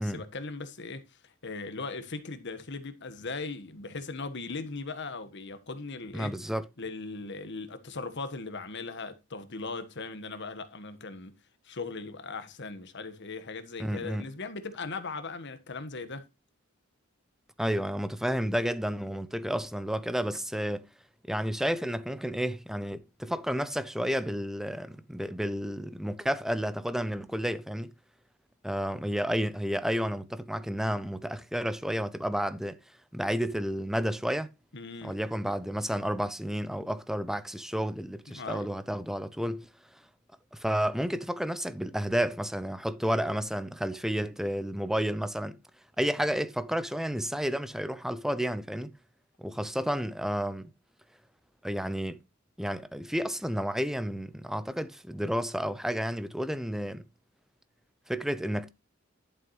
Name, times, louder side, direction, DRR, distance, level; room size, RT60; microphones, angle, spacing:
voice 1, 0.0-6.3 6.8-11.3 11.6-16.3 34.7-35.2 38.3-38.7, left 3 dB, 60° left, 1.5 m, -39 dB
voice 2, 6.1-6.7 13.8-14.3 17.6-20.9 21.3-27.9 28.6-32.8 33.1-34.5 35.0-39.7 40.5-45.6 46.0-48.9 49.4-50.7 51.6-52.2 52.6-57.1 58.1-58.7, equal, ahead, 0.6 m, -31 dB
11.5 x 7.2 x 3.1 m
head